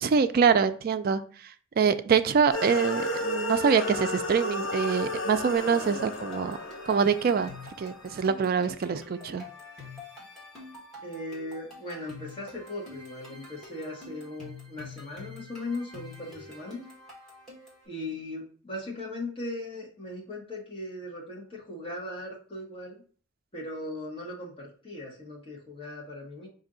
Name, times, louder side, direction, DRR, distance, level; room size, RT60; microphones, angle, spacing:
voice 1, 0.0-6.6 6.9-7.5 7.8-9.4, right 6 dB, 45° right, 11 dB, 0.3 m, -25 dB
sound 1, 2.5-7.9, left 2 dB, 70° left, 0.7 m, -33 dB
sound 2, 5.6-17.9, left 3 dB, ahead, 1.6 m, -47 dB
voice 2, 11.0-16.8 17.9-23.0 23.5-26.5, left 1 dB, 25° left, -5 dB, 1.2 m, -38 dB
5.1 x 2.6 x 3.8 m, 0.42 s
head